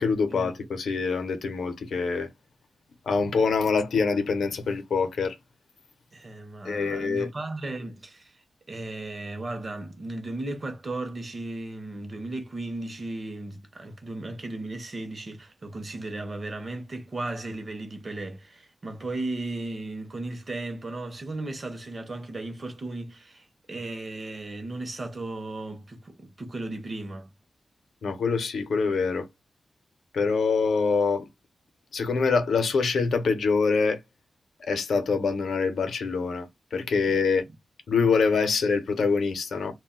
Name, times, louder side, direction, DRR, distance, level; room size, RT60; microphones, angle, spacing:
voice 1, 0.0-2.3 3.1-5.4 6.6-7.3 28.0-29.3 30.1-31.3 31.9-34.0 34.7-37.4 37.9-39.7, left 4 dB, 80° left, 0.6 m, -25 dB
voice 2, 6.1-27.3 37.1-37.2, right 2 dB, 30° right, 0.6 m, -36 dB
2.3 x 2.1 x 3.6 m
wide cardioid pair, 180°, 0 cm